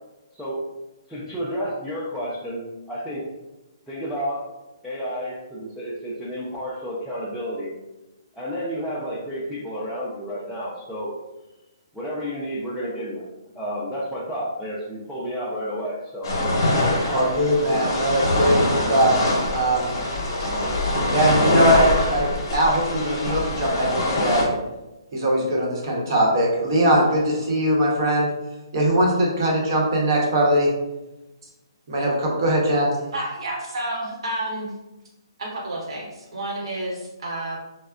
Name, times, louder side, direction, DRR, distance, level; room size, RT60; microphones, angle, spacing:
voice 1, 0.3-0.6 1.1-3.3 3.9-4.5 4.8-7.7 8.3-11.1 11.9-13.3 13.5-16.3 16.8-17.0, equal, ahead, -10 dB, 0.4 m, -31 dB
sound 1, 16.2-24.4, left 1 dB, 50° left, 0.9 m, -23 dB
voice 2, 17.1-19.2 19.5-20.0 21.1-24.5 25.1-28.3 28.7-30.7 31.9-32.9, right 1 dB, 50° right, -2 dB, 0.9 m, -21 dB
voice 3, 33.1-34.7 35.4-37.6, right 1 dB, 75° right, -2 dB, 1.0 m, -30 dB
3.3 x 2.1 x 2.4 m, 1.0 s
hypercardioid pair, 155°, 3 cm